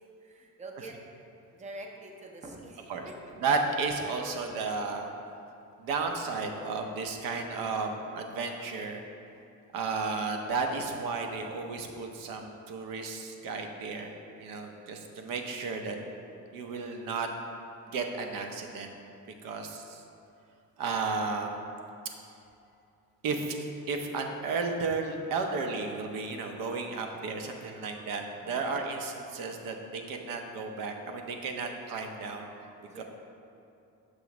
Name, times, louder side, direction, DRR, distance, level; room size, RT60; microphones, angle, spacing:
voice 1, 0.2-1.0 1.5-3.1 19.5-19.6 28.3-28.7 32.8-33.0, right 2 dB, 20° right, 1 dB, 0.6 m, -46 dB
voice 2, 3.4-5.1 5.8-9.0 9.7-14.1 14.4-16.0 16.5-17.3 17.9-18.9 19.4-20.0 20.8-21.6 23.2-23.6 23.9-32.7 32.9-33.0, right 4 dB, 70° right, 4 dB, 0.7 m, -33 dB
6.4 x 3.0 x 5.9 m, 2.7 s
cardioid pair, 150°, 35 cm